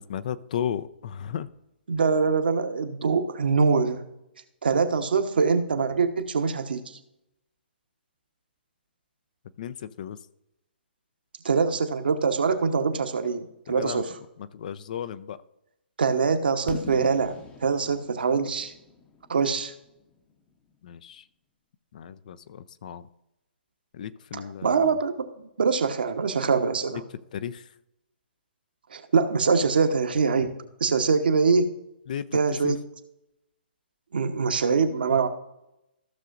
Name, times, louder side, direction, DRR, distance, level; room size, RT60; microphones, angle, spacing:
voice 1, 0.0-1.5 9.6-10.2 13.7-14.0 14.4-15.4 20.8-21.2 21.9-23.1 23.9-24.9 27.3-27.6 32.1-32.3 32.6-32.7, left 9 dB, 45° left, 14 dB, 0.5 m, -34 dB
voice 2, 1.9-4.0 4.6-7.0 11.4-14.1 16.0-17.3 17.6-18.7 19.3-19.7 24.3-25.3 25.6-27.0 28.9-31.7 32.3-32.8 34.1-35.3, right 5 dB, 65° right, 7 dB, 1.0 m, -24 dB
Fireworks, 16.7-20.5, left 4 dB, 20° left, 0.8 m, -42 dB
15.0 x 6.6 x 2.5 m, 0.86 s
figure-of-eight pair, 125°, 6 cm